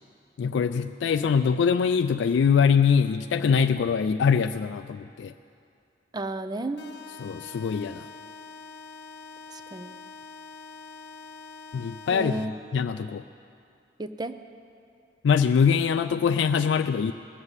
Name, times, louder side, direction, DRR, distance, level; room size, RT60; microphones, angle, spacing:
voice 1, 0.4-5.3 7.2-8.1 11.7-12.3 12.7-13.2 15.2-17.1, left 6 dB, 85° left, 8 dB, 0.3 m, -23 dB
voice 2, 6.1-6.8 9.5-10.0 12.1-12.5 14.0-14.4, right 2 dB, 25° right, 10 dB, 0.5 m, -33 dB
sound 1, 6.8-12.8, left 4 dB, 70° left, 0.9 m, -45 dB
19.5 x 7.3 x 8.1 m, 2.6 s
head